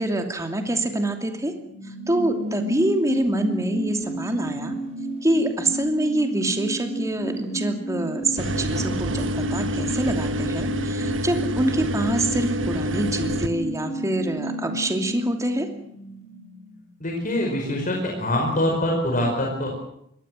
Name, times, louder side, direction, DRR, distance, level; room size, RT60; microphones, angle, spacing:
voice 1, 0.0-1.5 2.1-4.7 5.2-9.2 9.5-15.7, right 1 dB, 15° right, 5 dB, 2.8 m, -25 dB
sound 1, 1.5-16.7 17.0-17.1, right 2 dB, 40° right, 4.1 m, -32 dB
sound 2, 8.4-13.5, equal, 85° right, 1.4 m, -27 dB
voice 2, 17.0-19.7, left 1 dB, 45° left, 0 dB, 5.0 m, -24 dB
23.5 x 19.0 x 7.7 m, 0.75 s
head